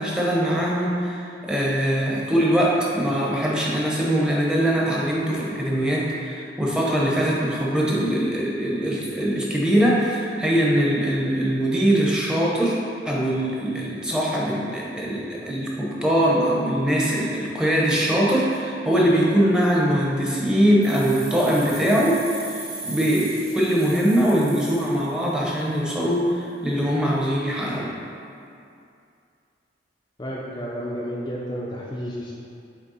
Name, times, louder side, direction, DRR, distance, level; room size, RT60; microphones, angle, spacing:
voice 1, 0.0-22.6 22.8-27.9, equal, 5° right, -5 dB, 0.8 m, -22 dB
sound 1, 20.8-25.6, right 3 dB, 55° right, 1.1 m, -38 dB
voice 2, 30.2-32.3, equal, 20° left, -6 dB, 0.5 m, -31 dB
7.8 x 3.4 x 4.1 m, 2.5 s
head